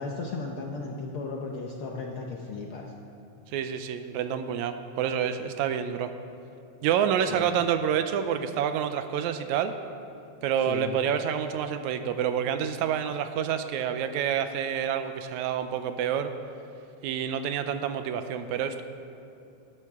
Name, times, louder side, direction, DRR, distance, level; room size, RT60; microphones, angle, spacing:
voice 1, 0.0-2.9 7.3-7.5 10.7-11.0, left 3 dB, 70° left, 0 dB, 1.3 m, -35 dB
voice 2, 3.5-6.1 6.8-9.7 10.4-16.3 17.0-18.8, right 8 dB, 85° right, 9 dB, 2.0 m, -28 dB
18.5 x 11.0 x 3.6 m, 2.6 s
omnidirectional pair, 3.3 m